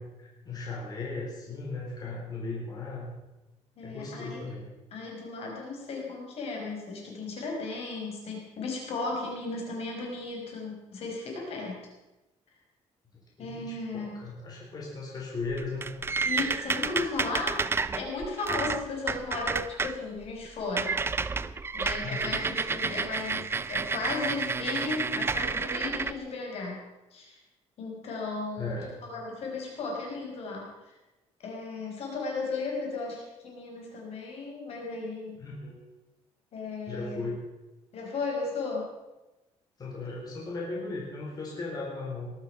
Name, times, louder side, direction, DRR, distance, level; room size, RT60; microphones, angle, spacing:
voice 1, 0.0-3.1 3.8-4.7 13.4-15.9 22.0-22.4 28.6-28.9 35.4-35.8 36.9-37.4 39.8-42.3, left 3 dB, 35° left, -3 dB, 4.2 m, -37 dB
voice 2, 3.8-4.4 4.9-11.8 13.4-14.2 16.3-17.6 17.9-21.0 21.7-26.8 27.1-27.4 27.8-31.0 31.4-35.4 36.5-37.3 37.9-38.9, left 3 dB, 60° left, 0 dB, 5.1 m, -35 dB
sound 1, 15.4-20.0 20.3-20.5 20.7-26.1, right 4 dB, 20° right, 0.5 m, -30 dB
19.0 x 12.0 x 5.9 m, 1.1 s
cardioid pair, 150°, 12 cm